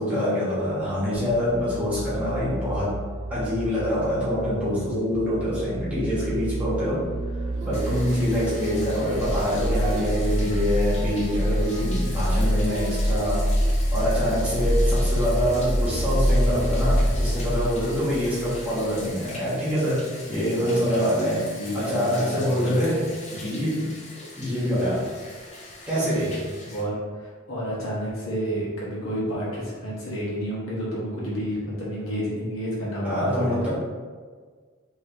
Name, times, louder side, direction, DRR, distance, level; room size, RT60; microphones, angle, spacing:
voice 1, 0.0-3.0 3.3-7.0 7.6-13.4 13.9-21.4 21.7-25.1 25.9-26.4 33.0-33.7, equal, 5° right, -10 dB, 1.3 m, -25 dB
sound 1, 1.1-18.6 18.9-19.0, equal, 25° right, 1.1 m, -26 dB
Female singing, 7.6-14.1, right 4 dB, 60° right, 0.3 m, -40 dB
Bathtub (filling or washing), 7.7-26.8, left 2 dB, 35° left, 0.6 m, -42 dB
voice 2, 20.3-21.1 21.6-23.0 26.2-26.3 26.6-33.7, equal, 75° left, -7 dB, 1.4 m, -31 dB
4.2 x 3.0 x 3.0 m, 1.6 s
head